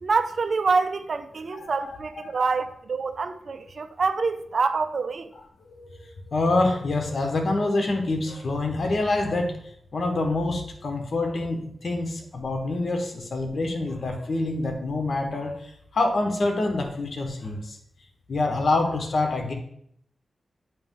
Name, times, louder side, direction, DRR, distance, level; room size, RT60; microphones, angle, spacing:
voice 1, 0.0-5.3, right 4 dB, 65° right, 0.4 m, -26 dB
voice 2, 1.5-2.5 5.7-9.5 9.9-17.8 18.3-19.5, left 2 dB, 65° left, 1.1 m, -26 dB
8.8 x 3.1 x 3.7 m
cardioid pair, 60°, 0 cm